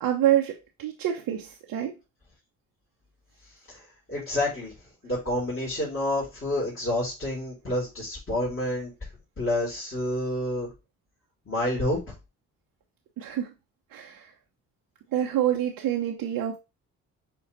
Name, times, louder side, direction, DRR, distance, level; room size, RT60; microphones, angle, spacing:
voice 1, 0.0-1.9 13.2-13.5 13.9-14.3 15.1-16.6, right 11 dB, 55° right, 0 dB, 1.1 m, -27 dB
voice 2, 3.7-4.7 5.0-8.9 9.4-10.7 11.5-12.1, left 1 dB, 30° left, -8 dB, 4.5 m, -29 dB
6.7 x 3.8 x 4.2 m, 0.27 s
figure-of-eight pair, 45°, 41 cm